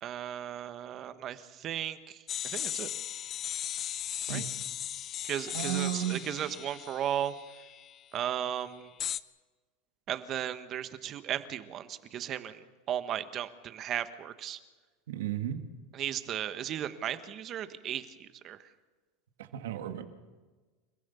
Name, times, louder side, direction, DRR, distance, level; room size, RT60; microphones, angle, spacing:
voice 1, 0.0-2.2 2.5-2.9 4.3-4.4 5.2-7.3 8.1-8.9 10.1-12.6 12.9-14.6 15.9-18.6, right 10 dB, 35° right, 1.4 m, -35 dB
sound 1, 2.3-8.0 9.0-9.2, left 10 dB, 35° left, 0.6 m, -37 dB
voice 2, 5.5-6.3 15.1-15.6 19.4-20.1, right 11 dB, 90° right, 2.1 m, -34 dB
29.0 x 15.5 x 7.1 m
supercardioid pair, 135°, 0 cm